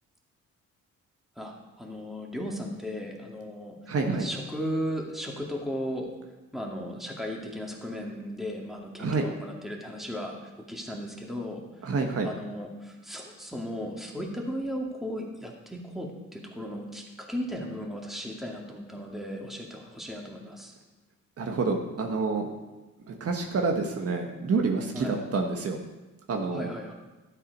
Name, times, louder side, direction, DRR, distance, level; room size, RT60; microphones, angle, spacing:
voice 1, 1.4-3.8 4.1-6.1 6.5-11.9 12.2-20.7 24.9-25.2 26.5-26.9, equal, ahead, -1 dB, 2.3 m, -36 dB
voice 2, 3.9-4.3 9.0-9.2 11.8-12.3 21.4-22.5 23.1-25.8 26.3-26.7, right 4 dB, 50° right, 2 dB, 1.5 m, -28 dB
12.0 x 7.6 x 5.4 m, 1.1 s
cardioid pair, 90°, 30 cm